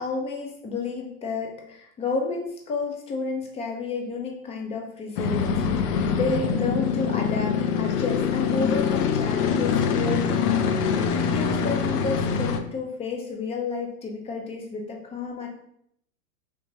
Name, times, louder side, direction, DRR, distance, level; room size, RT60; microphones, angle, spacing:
voice 1, 0.0-15.5, left 4 dB, 15° left, 1 dB, 0.4 m, -31 dB
sound 1, 5.2-12.6, left 6 dB, 85° left, 0.6 m, -24 dB
3.4 x 2.8 x 3.2 m, 0.71 s
hypercardioid pair, 120°, 45 cm